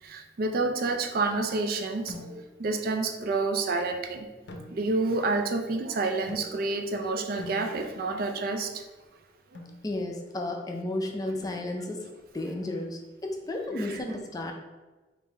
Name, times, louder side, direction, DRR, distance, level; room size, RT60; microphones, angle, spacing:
voice 1, 0.0-4.3 4.7-8.8 9.5-9.6 13.8-14.0, right 3 dB, 55° right, 5 dB, 0.4 m, -29 dB
sound 1, 2.1-2.7 4.5-5.2 6.3-6.9 7.4-8.2 9.5-9.9 11.4-12.0, left 1 dB, 75° left, 0.5 m, -45 dB
voice 2, 9.8-12.1 12.3-14.5, left 1 dB, 20° left, 2 dB, 0.4 m, -33 dB
3.8 x 2.6 x 4.0 m, 1.2 s
head